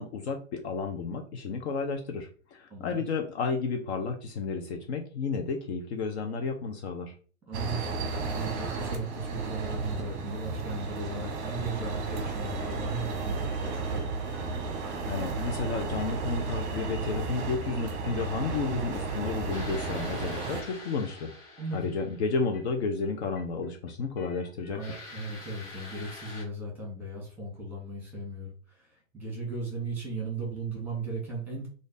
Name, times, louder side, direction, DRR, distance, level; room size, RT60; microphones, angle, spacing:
voice 1, 0.0-7.1 15.0-21.3 21.7-25.0, left 4 dB, 50° left, 4 dB, 0.7 m, -32 dB
voice 2, 2.7-3.0 7.5-14.1 21.6-21.9 24.7-31.7, right 2 dB, 5° right, -2 dB, 1.7 m, -37 dB
sound 1, 7.5-20.6, right 4 dB, 25° right, 0.8 m, -33 dB
sound 2, 12.5-13.1 13.4-14.7 15.0-15.5 15.8-16.4 16.7-17.2 17.5-19.7 19.9-20.5 20.8-21.3 21.6-22.1 22.4-23.0 23.2-25.4, left 3 dB, 65° left, 1.6 m, -56 dB
sound 3, 19.5-22.7 24.8-26.4, left 2 dB, 35° left, 1.4 m, -46 dB
3.2 x 2.6 x 3.9 m, 0.40 s
hypercardioid pair, 140°, 42 cm